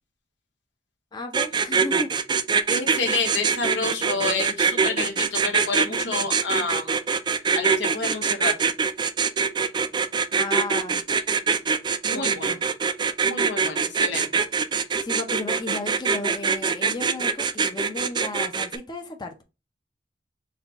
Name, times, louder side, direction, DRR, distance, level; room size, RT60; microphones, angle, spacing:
voice 1, 1.1-2.1 10.3-11.0 12.1-12.6 15.0-19.4, left 2 dB, 25° left, 0.5 m, -34 dB
sound 1, 1.3-18.8, right 5 dB, 25° right, 0.3 m, -23 dB
voice 2, 2.7-6.9 7.5-8.5 12.0-12.5 13.2-14.4, left 3 dB, 85° left, 1.2 m, -29 dB
4.1 x 2.3 x 4.0 m
head